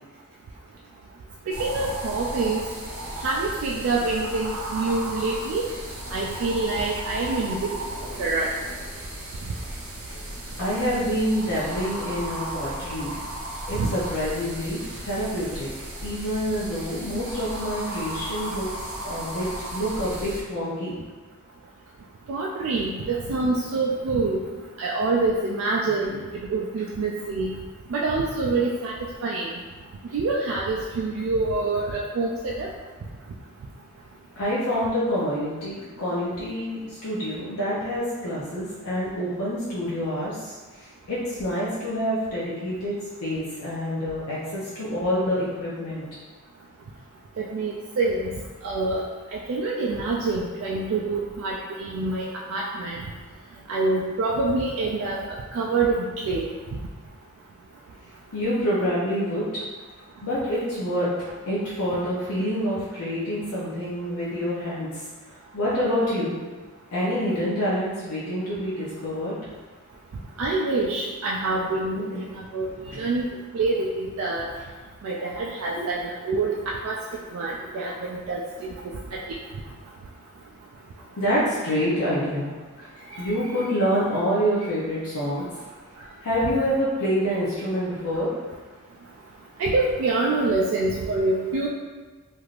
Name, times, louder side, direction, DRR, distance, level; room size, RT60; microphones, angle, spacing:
voice 1, 1.5-2.6 3.2-5.7 6.1-7.6 8.2-8.5 13.8-13.9 22.3-24.4 24.8-26.2 26.5-27.6 27.9-28.9 29.2-29.5 30.1-32.7 47.4-48.3 48.6-49.0 49.3-53.0 53.7-55.2 55.5-56.5 70.4-72.0 72.4-73.3 73.5-74.5 75.0-77.0 77.3-78.4 79.1-79.2 83.1-83.3 89.6-91.7, right 3 dB, 65° right, -2 dB, 0.3 m, -26 dB
sound 1, 1.5-20.4, right 1 dB, 90° right, 0.8 m, -35 dB
voice 2, 10.6-13.1 13.4-15.7 16.0-21.0 25.9-26.2 34.4-46.0 58.3-59.6 60.2-66.4 66.9-69.4 72.1-72.2 72.9-73.1 75.7-75.9 81.2-85.4 86.2-88.3, equal, 85° left, -8 dB, 0.6 m, -27 dB
3.2 x 2.5 x 2.4 m, 1.4 s
head